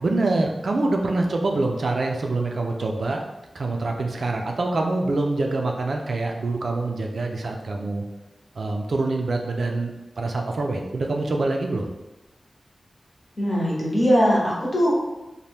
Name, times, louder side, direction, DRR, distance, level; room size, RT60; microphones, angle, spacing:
voice 1, 0.0-3.2 3.5-8.0 8.6-11.9, right 2 dB, 65° right, 2 dB, 0.3 m, -25 dB
voice 2, 13.4-14.9, equal, 35° left, -4 dB, 0.8 m, -20 dB
2.7 x 2.1 x 3.3 m, 1.0 s
wide cardioid pair, 110°, 0 cm